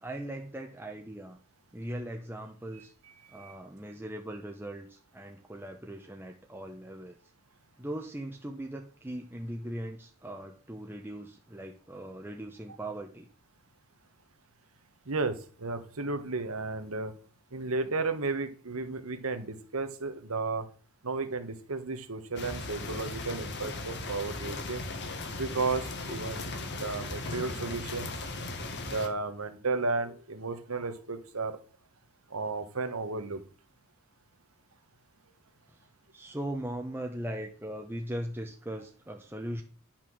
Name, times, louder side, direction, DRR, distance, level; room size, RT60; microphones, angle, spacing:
voice 1, 0.0-1.4 1.7-2.9 3.3-7.2 7.8-13.3 35.7-35.8 36.1-39.6, right 1 dB, 10° right, 2 dB, 0.8 m, -39 dB
voice 2, 3.2-3.6 15.1-17.1 17.5-20.7 21.0-24.8 25.4-28.1 28.8-31.6 32.3-33.4, right 3 dB, 70° right, 9 dB, 1.3 m, -33 dB
sound 1, 22.4-29.1, left 2 dB, 55° left, 1.6 m, -37 dB
10.5 x 6.0 x 6.2 m, 0.41 s
head